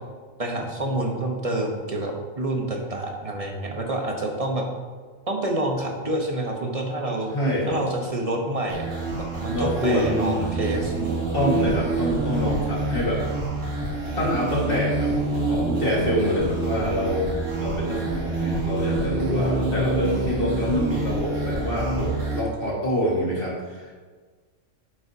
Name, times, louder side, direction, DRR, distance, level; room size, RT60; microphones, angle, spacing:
voice 1, 0.4-4.7 5.3-7.3 7.7-8.9 9.2-11.2, right 1 dB, 30° right, 1 dB, 1.1 m, -28 dB
voice 2, 7.3-7.8 9.5-10.4 11.3-13.2 14.2-15.1 15.4-23.9, equal, 45° left, -4 dB, 2.1 m, -26 dB
sound 1, 8.7-22.4, right 2 dB, 75° right, 2.3 m, -27 dB
10.0 x 7.8 x 2.8 m, 1.5 s
omnidirectional pair, 1.3 m